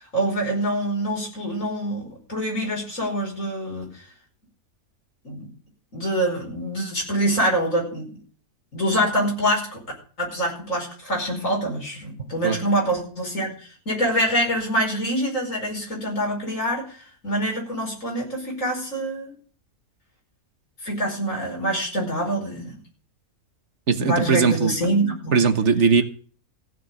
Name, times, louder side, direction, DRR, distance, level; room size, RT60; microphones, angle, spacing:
voice 1, 0.1-3.9 5.2-5.5 5.9-8.1 8.7-9.8 10.2-13.6 13.9-17.0 17.2-19.4 20.8-22.8 24.0-25.4, right 1 dB, 60° left, 0 dB, 5.5 m, -25 dB
voice 2, 23.9-24.7 25.3-26.0, right 5 dB, 55° right, 9 dB, 1.5 m, -19 dB
15.5 x 6.8 x 8.3 m, 0.43 s
omnidirectional pair, 1.5 m